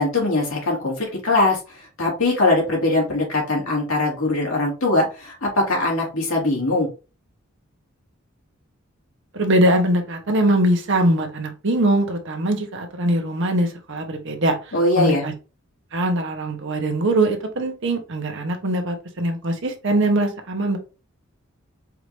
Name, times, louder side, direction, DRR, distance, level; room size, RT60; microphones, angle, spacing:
voice 1, 0.0-6.9 14.7-15.2, left 2 dB, 80° left, 2.3 m, -21 dB
voice 2, 9.3-15.3 15.9-20.8, right 1 dB, 65° right, 1.0 m, -22 dB
4.8 x 2.7 x 3.2 m
head